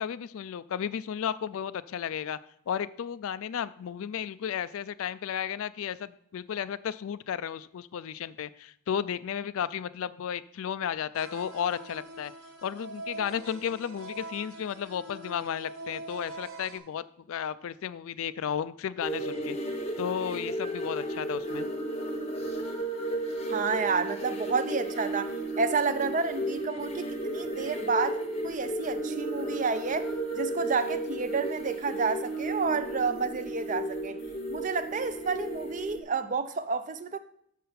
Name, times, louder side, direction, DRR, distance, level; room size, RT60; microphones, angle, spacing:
voice 1, 0.0-2.4 2.7-12.3 12.6-19.6 20.0-21.7, left 8 dB, 70° left, 0.3 m, -33 dB
sound 1, 11.1-16.8, right 2 dB, 70° right, 1.2 m, -43 dB
sound 2, 19.0-36.0, right 1 dB, 30° left, 0.8 m, -33 dB
voice 2, 23.5-34.2 34.5-37.2, right 4 dB, 35° right, 0.4 m, -30 dB
6.5 x 5.5 x 5.8 m
head